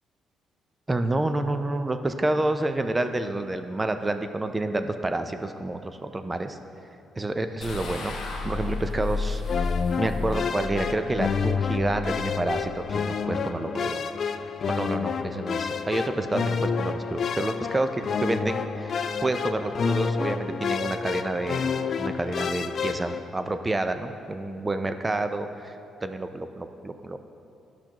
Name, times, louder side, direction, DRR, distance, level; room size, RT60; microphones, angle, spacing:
voice 1, 0.9-6.6 7.2-8.2 8.4-9.7 10.0-14.0 14.7-27.2, right 2 dB, 20° right, 8 dB, 0.5 m, -29 dB
sound 1, 7.6-13.0, left 3 dB, 70° left, 1.2 m, -33 dB
sound 2, 9.5-23.2, left 6 dB, 55° left, 0.3 m, -29 dB
12.5 x 5.9 x 3.0 m, 2.7 s
cardioid pair, 90°, 0 cm